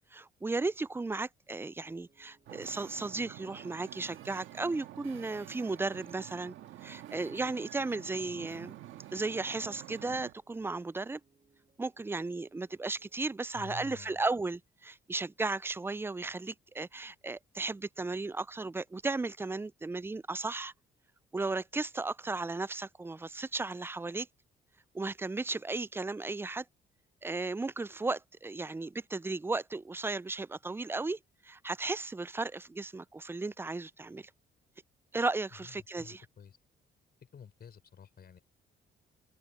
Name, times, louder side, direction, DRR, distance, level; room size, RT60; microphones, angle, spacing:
voice 1, 0.1-6.5 6.8-8.8 9.1-11.2 11.8-20.7 21.3-24.3 24.9-26.7 27.2-34.3 35.1-36.3, right 3 dB, 10° right, 0.4 m, -35 dB
sound 1, 1.8-13.5, right 4 dB, 30° right, 5.1 m, -70 dB
Wind / Ocean, 2.4-10.3, right 14 dB, 85° right, 1.7 m, -48 dB
voice 2, 13.5-14.2 35.6-35.7 36.0-36.6 37.2-38.4, left 7 dB, 50° left, 4.7 m, -50 dB
open air
cardioid pair, 90°, 20 cm